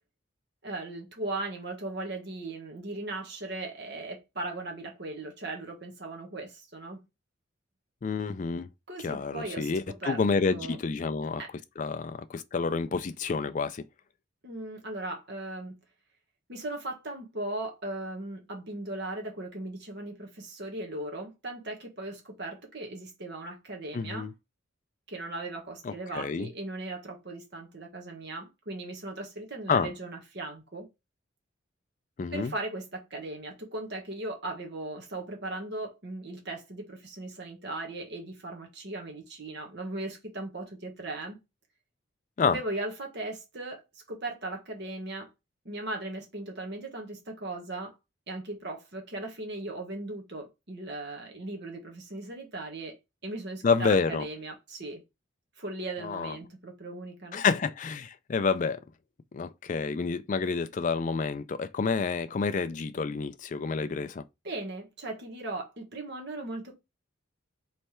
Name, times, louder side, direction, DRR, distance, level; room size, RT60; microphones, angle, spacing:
voice 1, 0.6-7.0 8.9-10.2 10.5-10.8 11.4-11.5 14.4-15.8 16.5-24.3 25.1-30.9 32.3-41.4 42.4-45.3 45.6-48.0 48.3-53.0 53.2-55.0 55.6-57.4 64.4-66.7, right 2 dB, 55° right, 1.2 m, -38 dB
voice 2, 8.0-8.7 9.0-11.4 11.8-13.8 23.9-24.3 25.8-26.5 29.7-29.9 32.2-32.5 42.4-42.6 53.6-54.3 56.0-56.4 57.3-58.8 59.3-64.2, left 5 dB, 40° left, 0.3 m, -29 dB
3.3 x 3.3 x 4.3 m
head